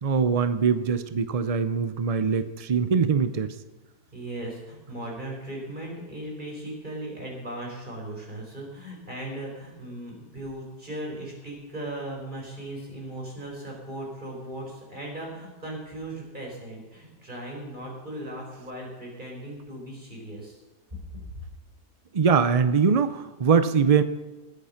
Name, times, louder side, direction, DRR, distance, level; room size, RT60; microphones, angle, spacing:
voice 1, 0.0-3.5 22.1-24.0, right 6 dB, 65° right, 12 dB, 0.3 m, -22 dB
voice 2, 4.1-20.6, right 1 dB, 30° right, -1 dB, 4.9 m, -37 dB
21.0 x 8.5 x 5.8 m, 1.2 s
omnidirectional pair, 1.7 m